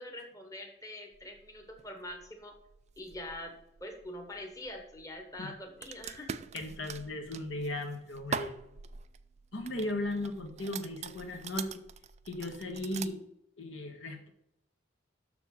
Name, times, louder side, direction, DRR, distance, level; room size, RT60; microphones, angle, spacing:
voice 1, 0.0-2.5 3.0-3.5 3.8-6.4, left 1 dB, 15° left, 3 dB, 1.1 m, -44 dB
sound 1, 1.1-13.1, right 6 dB, 35° right, 0.4 m, -44 dB
voice 2, 6.5-8.5 9.5-11.8 12.2-13.2 13.6-14.3, left 1 dB, 70° left, 3 dB, 1.6 m, -36 dB
7.0 x 6.4 x 7.1 m, 0.84 s
head